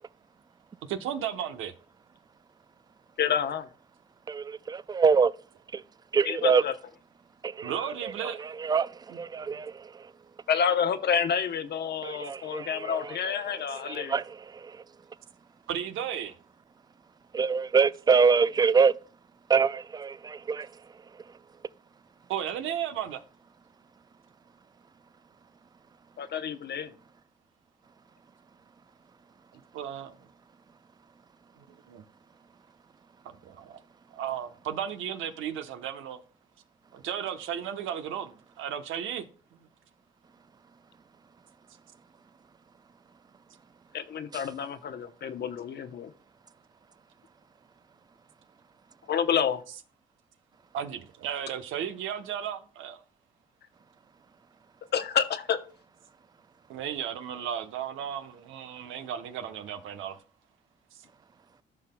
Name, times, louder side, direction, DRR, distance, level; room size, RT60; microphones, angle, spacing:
voice 1, 0.8-1.7 7.6-8.4 9.4-9.6 15.7-16.4 22.3-23.2 29.5-30.2 31.6-32.0 33.2-33.8 34.1-36.2 36.9-39.3 50.7-53.0 56.7-60.2 60.9-61.0, right 9 dB, 85° right, 0.9 m, -35 dB
voice 2, 3.2-3.7 6.3-6.7 10.5-14.2 26.2-26.9 43.9-46.1 49.1-49.6 54.9-55.6, left 7 dB, 55° left, 0.8 m, -29 dB
voice 3, 4.3-5.3 5.7-5.8 6.1-6.7 7.4-10.1 12.0-14.8 17.3-19.0 19.5-21.4 44.3-44.5, right 5 dB, 20° right, 0.3 m, -26 dB
14.5 x 5.6 x 2.2 m
cardioid pair, 90°, 20 cm